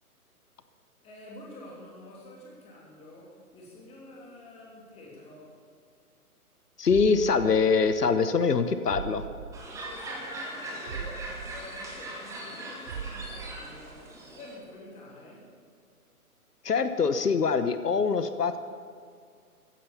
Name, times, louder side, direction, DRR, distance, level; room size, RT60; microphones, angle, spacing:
voice 1, 1.0-5.6 9.7-15.6, left 1 dB, 15° left, -3 dB, 3.0 m, -48 dB
voice 2, 6.8-9.2 16.6-18.6, left 5 dB, 90° left, 10 dB, 1.1 m, -24 dB
sound 1, 6.9-8.2 8.5-8.6 8.9-10.2 10.5-10.6 10.9-12.6 12.9-14.2 14.5-14.6, right 7 dB, 60° right, 0.9 m, -41 dB
sound 2, 9.5-14.5, right 1 dB, 5° right, 1.6 m, -40 dB
15.5 x 10.5 x 6.9 m, 2.2 s
figure-of-eight pair, 145°, 46 cm